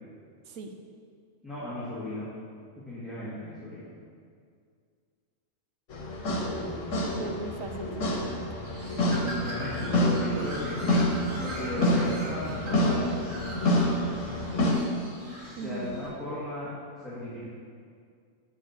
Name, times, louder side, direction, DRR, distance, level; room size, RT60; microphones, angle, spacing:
voice 1, 1.4-2.2 2.7-3.8 9.1-10.8 11.3-13.0 15.4-16.7 17.0-17.5, left 1 dB, ahead, -12 dB, 1.7 m, -36 dB
sound 1, 5.9-14.7, left 1 dB, 70° left, 1.4 m, -28 dB
voice 2, 6.2-8.4 15.5-15.9, right 3 dB, 85° right, 5 dB, 1.1 m, -39 dB
Bird, 8.6-16.1, right 1 dB, 60° right, 2.0 m, -41 dB
7.9 x 6.7 x 4.4 m, 2.2 s
omnidirectional pair, 1.3 m